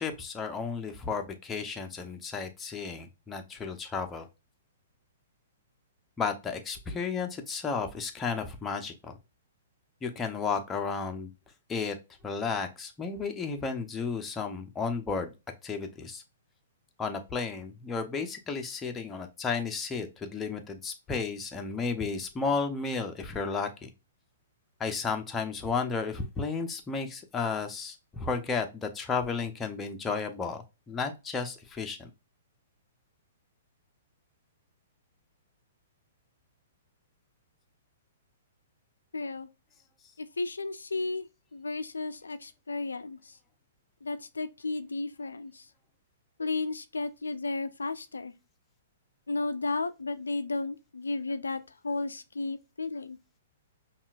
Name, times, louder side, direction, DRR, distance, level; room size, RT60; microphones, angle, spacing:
voice 1, 0.0-4.3 6.2-9.1 10.0-11.3 11.7-12.0 12.2-15.3 15.6-16.2 17.0-23.9 24.8-32.1, left 5 dB, 15° left, 0.7 m, -33 dB
voice 2, 39.1-39.5 40.4-41.2 41.5-43.3 44.0-45.6 46.4-48.3 49.3-53.2, left 3 dB, 90° left, 0.4 m, -33 dB
5.5 x 2.4 x 2.4 m
hypercardioid pair, 120°, 0 cm